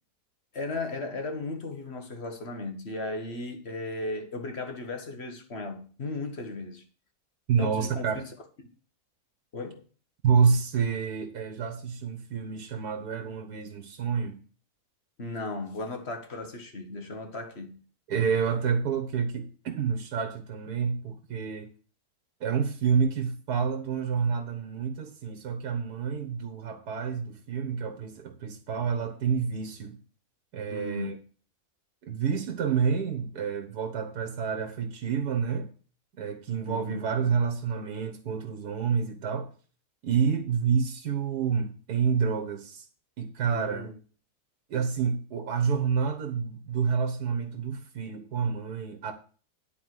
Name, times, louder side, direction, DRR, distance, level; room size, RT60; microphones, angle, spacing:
voice 1, 0.5-6.8 7.6-8.3 9.5-9.8 15.2-17.8 30.7-31.2 36.7-37.0 43.5-44.0, left 2 dB, 45° left, 1.6 m, -36 dB
voice 2, 7.5-8.2 10.2-14.4 18.1-21.7 22.4-30.0 30.5-31.1 32.0-35.7 36.2-39.5 40.0-42.8 43.2-43.9 44.7-49.1, right 6 dB, 80° right, 1.8 m, -28 dB
10.5 x 4.2 x 7.6 m
omnidirectional pair, 1.7 m